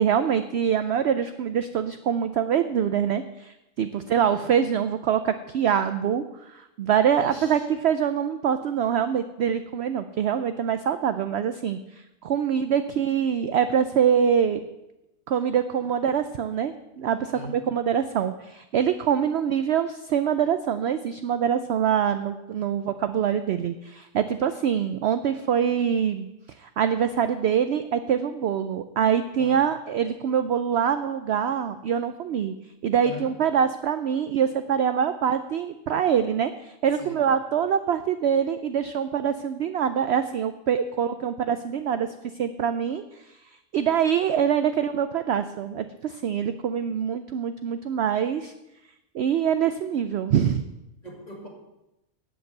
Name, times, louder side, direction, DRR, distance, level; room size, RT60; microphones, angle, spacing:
voice 1, 0.0-14.6 15.3-26.3 26.6-32.5 32.8-42.1 42.3-43.4 43.7-48.5 49.1-50.6, right 8 dB, 65° right, 10 dB, 0.7 m, -24 dB
voice 2, 4.2-4.5 7.1-7.7 10.1-10.2 17.3-17.6 29.4-29.6 33.0-33.3 37.0-37.2 51.0-51.5, left 1 dB, 30° left, 0 dB, 2.3 m, -41 dB
8.9 x 7.8 x 7.8 m, 0.94 s
omnidirectional pair, 1.5 m